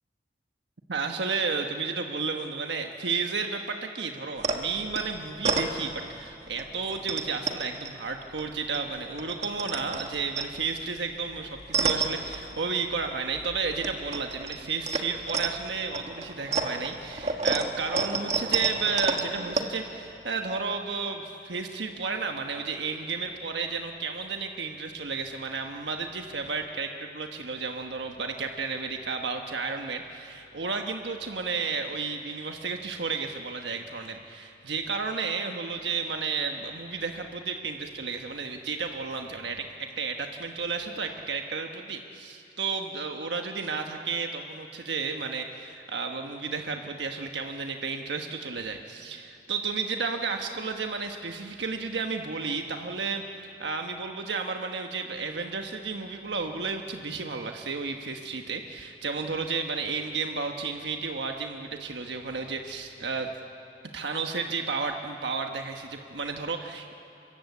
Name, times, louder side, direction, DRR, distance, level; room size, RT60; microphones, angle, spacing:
voice 1, 0.9-63.3 63.9-66.9, right 4 dB, 85° right, 4 dB, 1.2 m, -32 dB
sound 1, 4.4-6.2 6.6-8.8 9.1-13.0 13.3-19.6, right 4 dB, 40° right, 1.5 m, -31 dB
25.5 x 22.5 x 8.4 m, 2.7 s
head